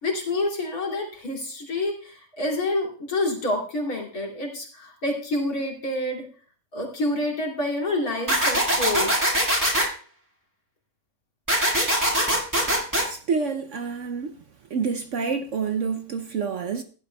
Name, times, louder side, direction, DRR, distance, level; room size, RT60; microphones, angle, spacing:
voice 1, 0.0-6.3 6.7-9.1, left 1 dB, 60° left, 3.1 m, -28 dB
sound 1, 8.3-9.9 11.5-13.0, right 1 dB, 10° right, 1.9 m, -22 dB
voice 2, 13.1-14.4 14.7-16.8, right 5 dB, 60° right, 0.8 m, -28 dB
16.5 x 11.5 x 2.3 m
omnidirectional pair, 1.8 m